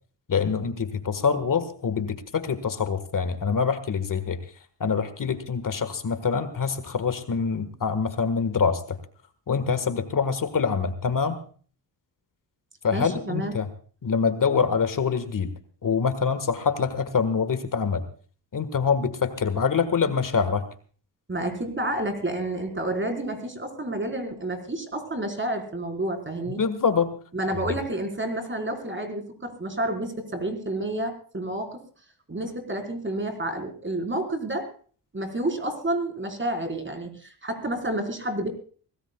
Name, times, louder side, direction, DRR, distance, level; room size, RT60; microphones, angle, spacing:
voice 1, 0.3-4.4 4.8-9.0 9.5-11.4 12.8-13.7 14.0-15.5 15.8-18.0 18.5-20.6 26.5-27.1, left 5 dB, 50° left, 11 dB, 1.6 m, -25 dB
voice 2, 12.9-13.6 21.3-26.6 27.3-31.8 32.3-34.7 35.1-38.5, right 1 dB, 30° right, 5 dB, 4.5 m, -30 dB
24.0 x 18.0 x 2.3 m, 0.43 s
cardioid pair, 85°, 41 cm